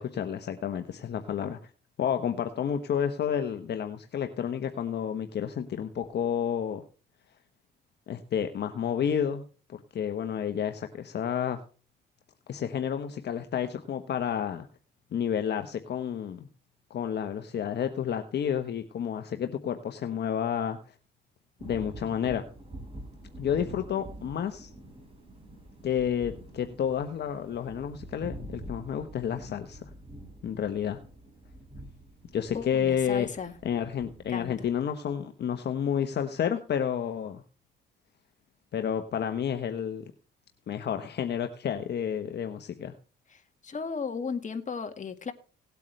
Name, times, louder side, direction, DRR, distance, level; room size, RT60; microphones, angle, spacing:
voice 1, 0.0-1.6 2.0-6.8 8.1-9.4 9.7-11.6 12.5-14.7 15.1-16.5 16.9-20.8 21.6-22.4 23.4-24.7 25.8-29.8 30.4-31.0 32.3-33.3 33.6-37.4 38.7-40.0 40.7-42.9, left 8 dB, 60° left, 7 dB, 1.1 m, -30 dB
sound 1, 21.6-34.8, right 1 dB, 25° right, 5.4 m, -46 dB
voice 2, 32.5-33.6 34.3-34.7 43.3-45.3, left 5 dB, 40° left, 7 dB, 1.8 m, -35 dB
18.0 x 8.3 x 3.3 m, 0.37 s
cardioid pair, 90°, 20 cm